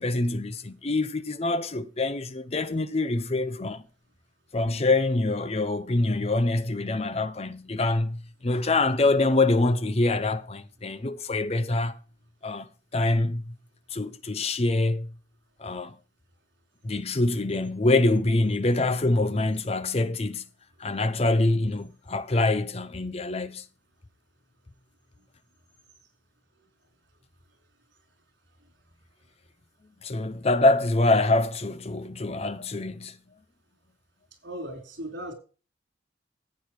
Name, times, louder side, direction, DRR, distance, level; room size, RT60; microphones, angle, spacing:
voice 1, 0.0-3.8 4.5-12.0 12.4-13.5 13.9-15.1 15.6-15.9 16.8-20.4 20.8-23.6 30.0-33.2, left 2 dB, 30° left, 0.6 m, -25 dB
voice 2, 34.4-35.3, right 1 dB, 65° right, 4.3 m, -37 dB
14.5 x 8.7 x 3.2 m
head